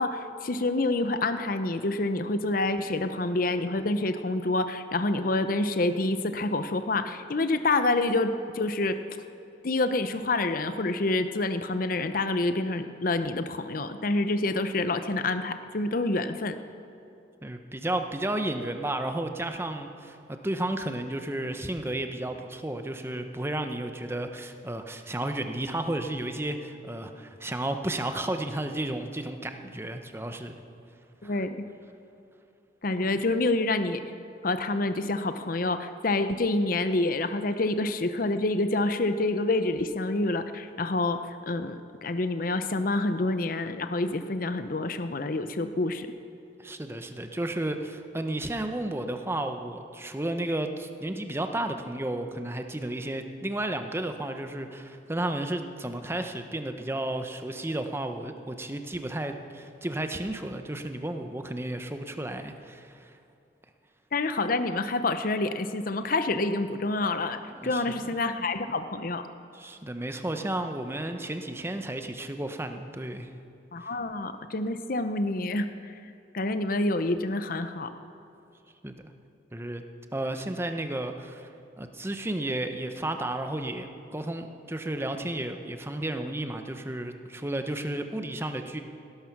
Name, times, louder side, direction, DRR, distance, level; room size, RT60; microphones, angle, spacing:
voice 1, 0.0-9.0 9.6-16.6 31.2-31.6 32.8-34.0 34.4-41.2 41.5-46.1 64.1-69.2 73.7-75.9 76.3-77.9, left 2 dB, 50° left, 10 dB, 0.7 m, -27 dB
voice 2, 17.4-20.2 20.4-30.6 31.2-31.3 46.6-63.1 67.5-67.8 69.5-73.3 78.8-79.0 79.5-79.8 80.1-81.5 81.8-88.8, right 1 dB, 15° right, 6 dB, 0.8 m, -33 dB
18.5 x 12.5 x 6.0 m, 2.6 s
head